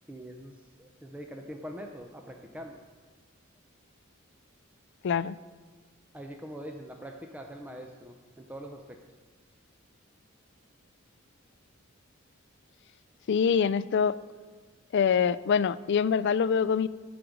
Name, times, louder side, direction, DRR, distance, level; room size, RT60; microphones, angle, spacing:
voice 1, 0.1-2.8 6.1-9.0, equal, 5° right, 2 dB, 0.6 m, -43 dB
voice 2, 5.0-5.4 13.3-14.2 14.9-16.9, left 6 dB, 60° left, 16 dB, 0.4 m, -24 dB
15.0 x 5.1 x 6.1 m, 1.4 s
head